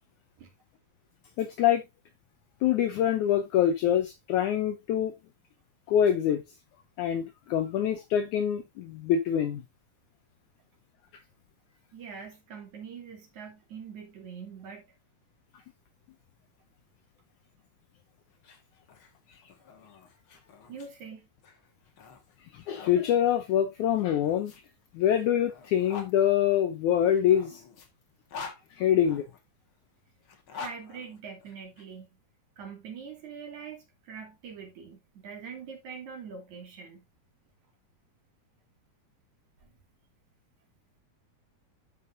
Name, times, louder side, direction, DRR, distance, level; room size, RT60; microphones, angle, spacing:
voice 1, 1.4-1.8 2.6-5.1 5.9-6.4 7.0-9.6 22.5-24.5 24.9-27.6 28.7-29.3, left 10 dB, 75° left, 1.9 m, -25 dB
voice 2, 11.9-14.8 20.7-21.3 30.5-32.2 32.6-37.0 39.6-39.7, right 6 dB, 55° right, 3.6 m, -43 dB
sound 1, 18.3-23.0 23.9-26.1 27.0-29.4 30.2-31.8, left 5 dB, 50° left, 1.7 m, -46 dB
12.5 x 5.4 x 2.6 m
omnidirectional pair, 4.2 m